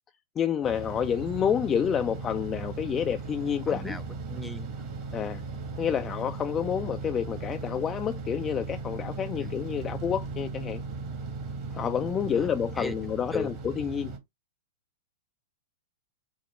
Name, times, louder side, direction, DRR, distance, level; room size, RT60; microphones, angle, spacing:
voice 1, 0.4-4.0 5.1-5.4 5.8-10.8 11.7-14.1, left 8 dB, 25° left, 0.3 m, -29 dB
sound 1, 0.6-14.2, right 4 dB, 45° right, 1.5 m, -37 dB
voice 2, 3.7-4.0 4.3-4.9 9.4-9.5 12.3-12.5 12.8-12.9 13.3-13.5, left 2 dB, 5° left, 0.7 m, -36 dB
4.7 x 2.1 x 4.1 m
hypercardioid pair, 105°, 0 cm